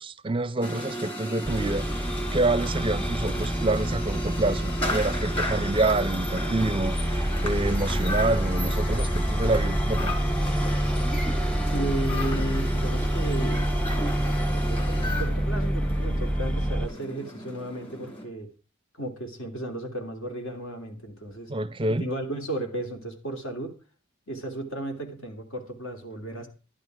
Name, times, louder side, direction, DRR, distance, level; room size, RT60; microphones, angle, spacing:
voice 1, 0.0-1.9 2.3-10.2 21.5-22.0, right 2 dB, 25° right, 0.5 m, -27 dB
sound 1, 0.6-18.2, equal, 25° left, 2.9 m, -34 dB
sound 2, 1.4-16.9, equal, 5° left, 0.8 m, -27 dB
voice 2, 11.7-13.7 14.5-18.5 19.0-21.5 22.0-23.7 24.3-26.5, right 1 dB, 70° left, 3.0 m, -34 dB
11.5 x 10.5 x 4.8 m
head